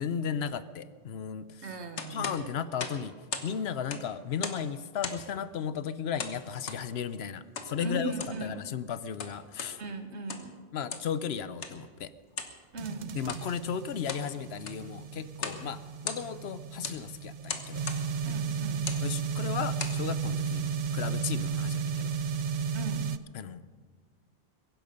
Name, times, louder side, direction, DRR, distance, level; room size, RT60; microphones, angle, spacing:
voice 1, 0.0-1.6 2.1-3.1 3.4-8.1 8.4-9.8 10.7-12.1 13.1-15.8 16.0-17.8 19.0-22.1 23.3-23.6, left 7 dB, 70° left, 15 dB, 0.9 m, -35 dB
voice 2, 1.6-2.5 7.8-8.6 9.8-10.6 12.7-13.2 18.2-18.9 22.7-23.1, right 2 dB, 75° right, 7 dB, 1.6 m, -38 dB
sound 1, 2.0-3.5 3.8-4.7 5.0-5.4 6.2-6.8 7.5-7.7 8.1-8.4 9.0-9.7 10.2-10.5 10.9-11.1 11.6-11.8 12.3-12.6 13.2-13.5 13.9-14.3 14.6-14.9 15.4-15.6 15.9-16.5 16.8-17.0 17.5-18.0 18.7-19.1 19.6-20.0, left 5 dB, 90° left, 1.5 m, -38 dB
sound 2, 12.8-23.2, right 6 dB, 55° right, 0.5 m, -34 dB
22.5 x 10.5 x 5.3 m, 1.5 s
omnidirectional pair, 1.1 m